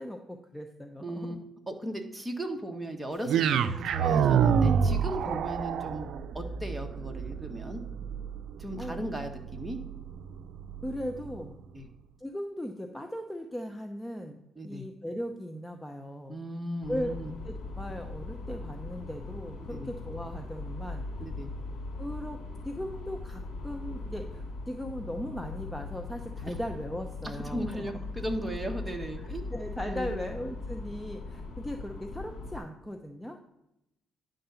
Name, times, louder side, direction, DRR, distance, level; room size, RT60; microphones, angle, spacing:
voice 1, 0.0-1.4 5.3-5.5 8.8-9.0 10.8-11.6 12.2-16.4 16.9-17.1 17.4-21.1 22.0-22.4 22.6-27.9 29.2-33.4, equal, 10° left, 4 dB, 0.8 m, -38 dB
voice 2, 1.0-1.4 1.7-6.1 6.3-7.8 8.6-9.8 11.7-11.9 14.6-14.9 16.3-17.3 19.7-19.9 21.2-21.5 26.5-26.6 27.2-29.5 29.9-30.2, right 1 dB, 10° right, 2 dB, 1.5 m, -37 dB
sound 1, 3.3-11.5, right 7 dB, 75° right, 0.5 m, -28 dB
sound 2, 16.8-32.6, left 3 dB, 65° left, 2.7 m, -40 dB
9.9 x 3.9 x 7.0 m, 0.86 s
cardioid pair, 90°, 0 cm